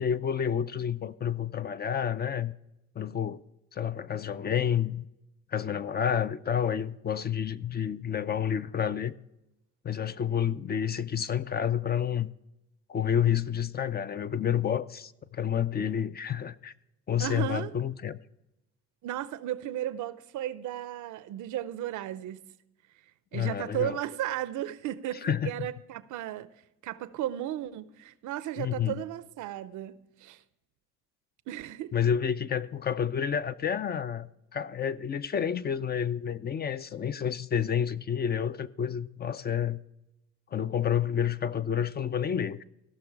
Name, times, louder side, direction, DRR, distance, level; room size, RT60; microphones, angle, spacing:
voice 1, 0.0-2.5 3.0-3.4 3.7-5.1 5.5-9.1 9.8-12.3 12.9-16.7 17.1-18.2 23.3-24.0 25.2-25.5 28.6-29.0 31.9-39.8 40.5-42.6, left 8 dB, 35° left, 0.4 m, -29 dB
voice 2, 17.2-17.7 19.0-22.4 23.3-26.5 26.8-30.4 31.5-31.9, right 12 dB, 80° right, 0.6 m, -35 dB
16.0 x 6.1 x 4.6 m
cardioid pair, 90°, 30 cm